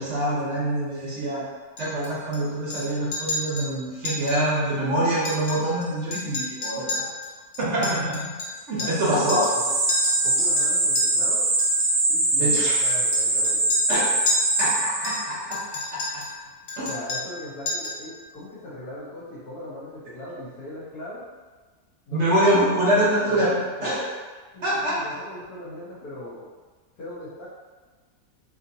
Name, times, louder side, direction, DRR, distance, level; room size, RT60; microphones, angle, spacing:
voice 1, 0.0-1.4 1.8-7.0 7.6-8.2 8.7-9.5 12.4-12.7 13.9-14.2 14.6-15.6 15.9-16.0 16.8-16.9 22.1-23.5 23.8-24.1 24.6-24.9, right 1 dB, 55° right, -7 dB, 1.0 m, -24 dB
Chink clink, 1.8-2.4 2.7-2.9 3.1-3.7 4.0-4.4 4.7-4.8 5.1-5.8 6.1-9.0 9.3-9.6 9.9-11.0 11.6-11.9 12.6-14.8 15.0-16.3 16.7-17.4 17.7-18.0, left 2 dB, 65° left, 1.0 m, -31 dB
voice 2, 8.8-9.7 10.2-11.4 12.1-13.7 16.8-21.2 22.1-22.9 23.3-23.9 24.5-26.4 27.0-27.5, left 1 dB, 80° left, -7 dB, 1.5 m, -39 dB
sound 1, 8.9-15.4, right 2 dB, 80° right, 1.1 m, -23 dB
3.5 x 2.7 x 2.6 m, 1.4 s
omnidirectional pair, 1.6 m